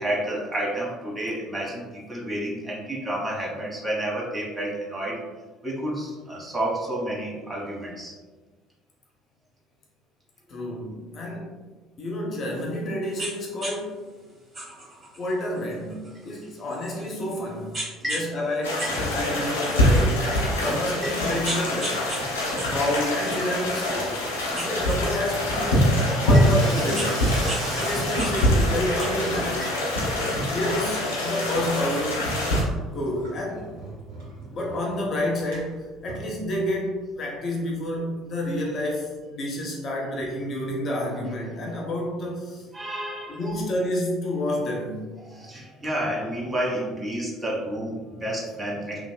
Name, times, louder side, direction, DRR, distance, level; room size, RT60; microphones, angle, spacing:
voice 1, 0.0-5.2 5.6-8.1 18.0-18.3 18.8-19.0 20.3-20.4 21.0-21.1 24.1-24.7 26.3-26.5 29.6-29.7 42.7-43.5 45.3-49.1, right 1 dB, 20° right, -3 dB, 1.0 m, -30 dB
voice 2, 10.5-11.5 12.0-14.0 15.2-17.7 18.0-22.0 22.7-24.1 24.5-25.9 26.2-27.2 27.7-29.7 30.5-32.3 32.9-33.7 34.5-42.6 43.3-45.1, left 1 dB, 45° left, -2 dB, 0.7 m, -29 dB
sound 1, 13.2-13.3 13.6-13.8 14.5-17.2 17.7-18.3 18.6-20.0 20.5-20.6 21.2-22.2 22.6-24.1 24.5-25.9 26.5-27.6 27.9-29.0, right 1 dB, 40° right, 1.4 m, -36 dB
sound 2, 18.6-32.6, equal, 75° left, 0.7 m, -24 dB
Water tap faucet / Sink (filling or washing), 20.3-20.6 20.8-21.4 21.7-37.0 37.3-37.4 37.6-37.7 37.9-38.0 39.0-39.1, right 1 dB, 70° right, 1.0 m, -40 dB
3.2 x 2.7 x 2.2 m, 1.3 s
figure-of-eight pair, 55°, 0 cm